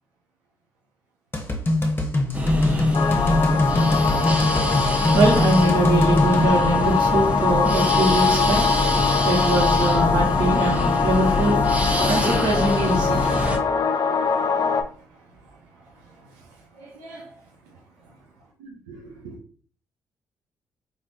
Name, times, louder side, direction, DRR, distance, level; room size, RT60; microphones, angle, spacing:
sound 1, 1.3-6.5, left 2 dB, 25° left, 0.9 m, -22 dB
sound 2, 2.3-13.6, equal, 15° right, 0.7 m, -25 dB
sound 3, 2.9-14.8, left 6 dB, 50° left, 0.5 m, -23 dB
voice 1, 4.7-13.4, right 1 dB, 60° right, 1.4 m, -23 dB
voice 2, 13.9-15.2 15.8-16.5 16.7-17.3 18.6-19.4, right 3 dB, 85° right, 0.6 m, -46 dB
3.3 x 2.9 x 2.6 m
hypercardioid pair, 40°, 9 cm